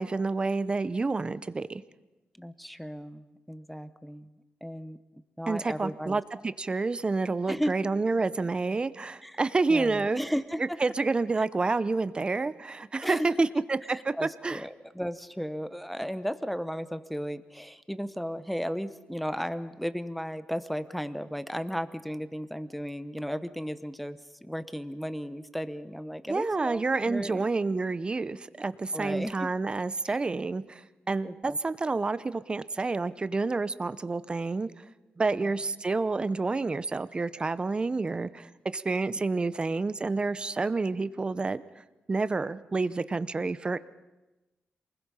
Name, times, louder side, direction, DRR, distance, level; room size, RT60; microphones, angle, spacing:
voice 1, 0.0-1.8 5.5-10.2 10.8-14.6 26.3-34.7 35.2-41.6 42.1-43.8, right 3 dB, 25° right, 15 dB, 0.7 m, -29 dB
voice 2, 2.4-4.3 4.6-5.0 5.4-6.2 7.5-7.7 9.2-9.4 9.7-10.8 13.0-13.5 13.9-27.4 28.9-29.5 31.2-31.6 35.3-35.4, equal, ahead, 12 dB, 0.9 m, -35 dB
27.5 x 20.5 x 5.6 m, 1.1 s
wide cardioid pair, 115°, 4 cm